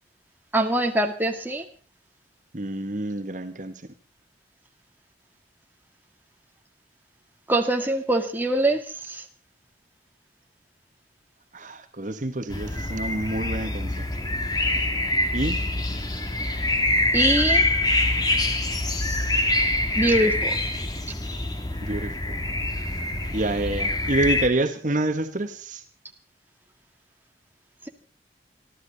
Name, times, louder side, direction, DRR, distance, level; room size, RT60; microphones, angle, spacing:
voice 1, 0.5-1.6 7.5-8.8 9.1-9.2 17.1-17.6 20.0-20.6, right 1 dB, 10° right, 3 dB, 2.0 m, -23 dB
voice 2, 2.5-3.9 11.5-14.1 15.3-15.6 21.8-22.4 23.3-25.8, right 2 dB, 45° right, 7 dB, 1.4 m, -28 dB
sound 1, 12.5-24.5, left 2 dB, 20° left, 2.2 m, -25 dB
28.0 x 12.5 x 4.0 m, 0.40 s
head